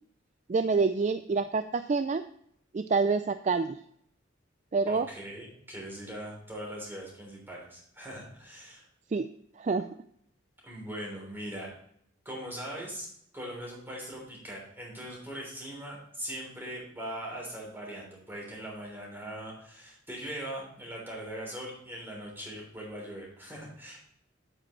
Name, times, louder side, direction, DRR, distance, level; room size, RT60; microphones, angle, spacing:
voice 1, 0.5-2.2 2.7-3.8 4.7-5.1 9.1-9.3 9.6-9.9, right 4 dB, 35° right, 10 dB, 0.3 m, -27 dB
voice 2, 4.9-8.8 10.6-11.7 12.2-13.1 13.3-24.0, equal, 10° right, -3 dB, 3.4 m, -40 dB
8.8 x 8.8 x 3.1 m, 0.68 s
head